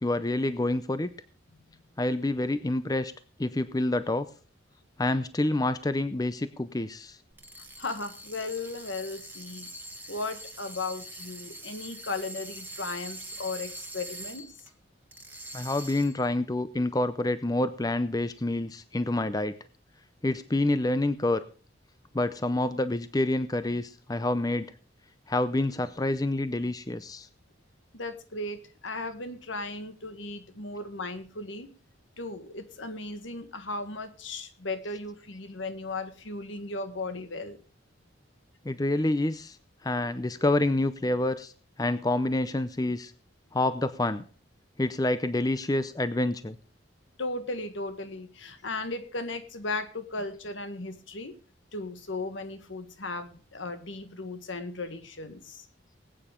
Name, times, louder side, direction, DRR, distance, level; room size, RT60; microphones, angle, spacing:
voice 1, 0.0-1.1 2.0-3.1 3.4-4.3 5.0-7.2 15.5-19.6 20.2-21.4 22.1-24.7 25.3-27.3 38.7-39.6 39.8-41.5 41.8-43.1 43.5-44.2 44.8-46.6, left 2 dB, 20° left, 13 dB, 0.6 m, -27 dB
sound 1, 7.3-14.7 15.1-16.3, right 1 dB, 10° right, 1.4 m, -43 dB
voice 2, 7.8-9.7 10.1-14.5 27.9-31.7 32.2-37.6 47.2-51.3 51.7-55.7, left 2 dB, 75° left, 9 dB, 1.6 m, -36 dB
20.0 x 8.9 x 3.7 m, 0.38 s
head